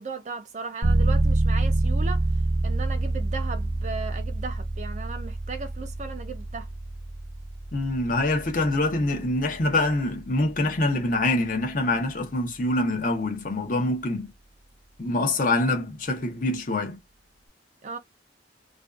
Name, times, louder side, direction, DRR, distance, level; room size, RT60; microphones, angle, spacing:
voice 1, 0.0-2.3 2.6-6.7 17.8-18.0, right 4 dB, 35° right, 0.4 m, -36 dB
sound 1, 0.8-11.4, right 2 dB, 75° right, 0.7 m, -27 dB
voice 2, 7.7-14.3 15.0-17.0, left 2 dB, 45° left, 0.6 m, -25 dB
2.5 x 2.2 x 2.3 m
head